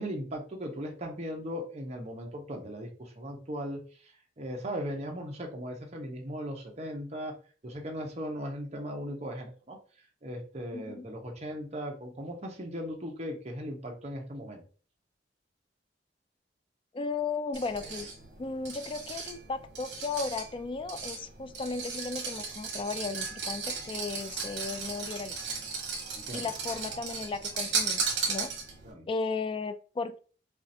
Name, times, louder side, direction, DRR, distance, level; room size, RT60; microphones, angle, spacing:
voice 1, 0.0-7.4 7.6-9.8 10.2-14.7 26.1-26.5 28.8-29.1, equal, 40° right, 1 dB, 1.0 m, -38 dB
voice 2, 10.7-11.1 16.9-18.1 18.4-25.4 26.3-28.5 29.1-30.2, left 4 dB, 30° left, 11 dB, 0.3 m, -35 dB
sound 1, 17.5-28.9, right 5 dB, 70° right, 1.3 m, -36 dB
4.8 x 2.5 x 2.8 m, 0.39 s
head